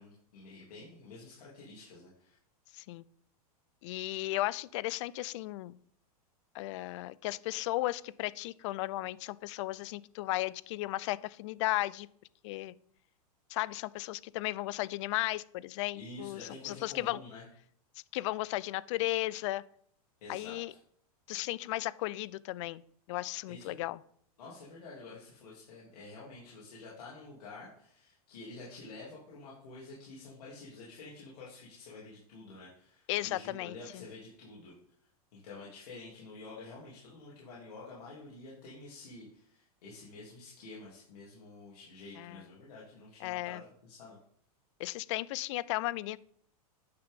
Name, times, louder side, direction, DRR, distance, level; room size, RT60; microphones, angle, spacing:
voice 1, 0.0-2.4 15.9-17.4 20.2-20.8 23.5-23.8 24.4-34.7 35.3-44.2, left 3 dB, 85° left, -6 dB, 2.9 m, -49 dB
voice 2, 2.7-3.0 3.8-5.8 6.5-12.1 12.4-12.7 13.5-17.2 18.1-19.6 20.3-20.7 21.3-22.8 23.1-24.0 33.1-34.0 42.2-42.4 43.2-43.6 44.8-46.2, left 17 dB, 50° left, 20 dB, 0.4 m, -35 dB
9.6 x 5.8 x 3.7 m, 0.63 s
supercardioid pair, 145°, 19 cm